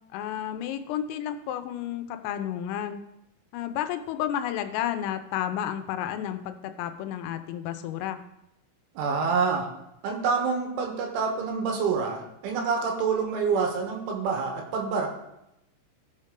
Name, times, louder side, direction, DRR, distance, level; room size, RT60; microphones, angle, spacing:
voice 1, 0.1-3.0 3.5-8.2, left 10 dB, 85° left, 8 dB, 3.3 m, -31 dB
voice 2, 9.0-9.7 10.0-15.1, right 5 dB, 75° right, 2 dB, 3.5 m, -27 dB
15.0 x 6.5 x 3.7 m, 0.86 s
omnidirectional pair, 5.9 m